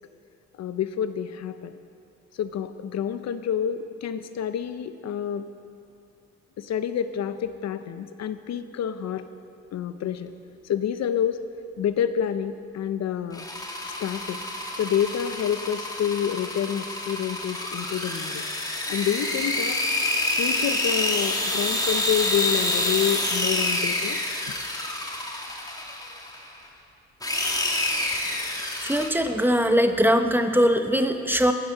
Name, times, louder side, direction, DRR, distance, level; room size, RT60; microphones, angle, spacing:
voice 1, 0.6-1.7 2.4-5.4 6.6-9.2 9.7-10.3 10.7-11.4 11.8-13.4 14.0-14.4 14.8-18.4 18.9-19.8 20.4-24.2, left 9 dB, 60° left, 11 dB, 0.7 m, -28 dB
sound 1, 13.3-26.5 27.2-29.1, left 1 dB, 10° left, 1.9 m, -28 dB
voice 2, 28.8-31.5, equal, 5° right, 7 dB, 0.8 m, -21 dB
16.0 x 9.3 x 5.8 m, 2.5 s
cardioid pair, 90°, 30 cm